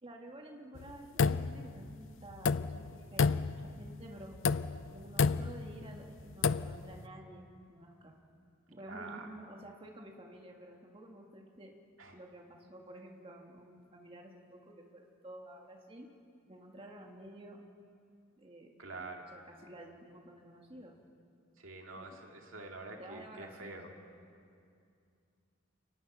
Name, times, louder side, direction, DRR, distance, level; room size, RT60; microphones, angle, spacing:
voice 1, 0.0-4.4 4.9-8.2 8.7-11.7 12.1-16.1 16.4-17.6 18.4-21.0 22.0-22.2 23.0-24.0, right 1 dB, 25° right, 1 dB, 1.8 m, -51 dB
sound 1, 0.8-1.9 2.3-2.9 3.2-3.9 4.3-4.9 5.2-5.7 6.3-6.8, left 5 dB, 60° left, 0.5 m, -30 dB
voice 2, 8.9-9.3 12.0-12.2 18.8-19.2 21.6-23.9, right 3 dB, 65° right, 2 dB, 2.4 m, -46 dB
28.5 x 18.5 x 6.2 m, 2.4 s
head